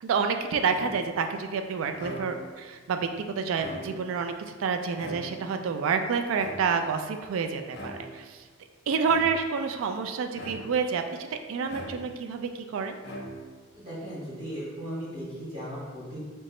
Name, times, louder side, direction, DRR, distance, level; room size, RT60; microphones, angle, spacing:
voice 1, 0.0-3.1 3.4-4.3 4.6-8.4 8.9-11.0 11.3-13.0, right 5 dB, 80° right, 7 dB, 0.3 m, -28 dB
sound 1, 0.7-1.3 1.9-2.6 3.4-4.2 5.0-5.7 6.4-7.0 7.7-8.3 9.0-9.6 10.3-10.9 11.7-12.4 13.0-13.7, equal, 55° left, 0.7 m, -41 dB
voice 2, 13.7-16.2, equal, 50° right, -11 dB, 1.5 m, -37 dB
3.3 x 2.8 x 3.1 m, 1.4 s
head